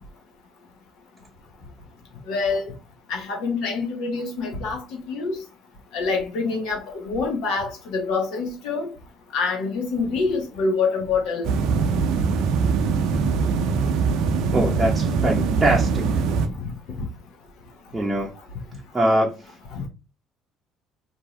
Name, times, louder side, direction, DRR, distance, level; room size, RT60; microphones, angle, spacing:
voice 1, 2.3-2.7 3.1-5.4 5.9-8.9 9.3-11.5 16.6-16.7 17.0-17.1 19.7-19.8, left 4 dB, 80° left, 1.1 m, -26 dB
sound 1, 11.4-16.5, right 5 dB, 75° right, 0.5 m, -22 dB
voice 2, 14.5-16.0 17.9-18.3 18.9-19.3, right 1 dB, 15° right, 0.7 m, -22 dB
2.6 x 2.6 x 3.1 m
cardioid pair, 95°, 0 cm